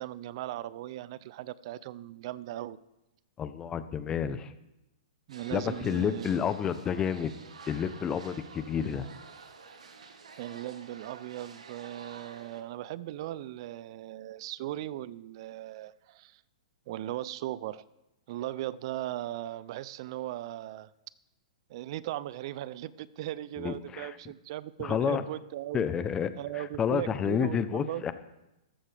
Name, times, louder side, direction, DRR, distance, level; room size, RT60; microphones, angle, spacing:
voice 1, 0.0-2.8 5.3-6.5 10.4-16.4 16.9-17.8 18.3-20.9 21.7-25.8 26.4-28.1, right 14 dB, 50° right, 19 dB, 0.5 m, -38 dB
voice 2, 3.4-4.5 5.5-7.3 7.7-9.1 23.6-24.1 24.8-25.2 25.7-28.1, left 7 dB, 20° left, 12 dB, 0.8 m, -30 dB
sound 1, 5.3-12.6, right 5 dB, 85° right, 1.5 m, -50 dB
14.5 x 13.0 x 3.5 m, 0.94 s
hypercardioid pair, 130°, 3 cm